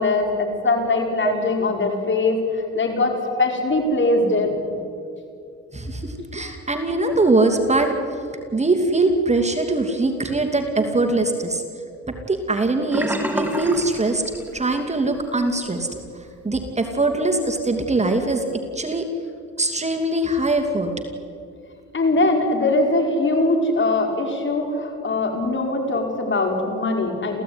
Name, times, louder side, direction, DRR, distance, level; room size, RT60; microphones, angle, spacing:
voice 1, 0.0-4.5 6.4-6.5 21.9-27.4, left 2 dB, 40° left, 3 dB, 5.1 m, -21 dB
voice 2, 5.7-7.9 8.5-11.6 12.1-14.2 14.5-15.9 16.4-18.5 18.7-19.1 19.6-20.9, right 2 dB, 20° right, 5 dB, 2.7 m, -22 dB
Sink (filling or washing), 12.9-14.9 15.2-15.5 15.9-16.0, equal, 5° right, 3.3 m, -28 dB
28.0 x 16.0 x 9.6 m, 2.4 s
cardioid pair, 90°, 30 cm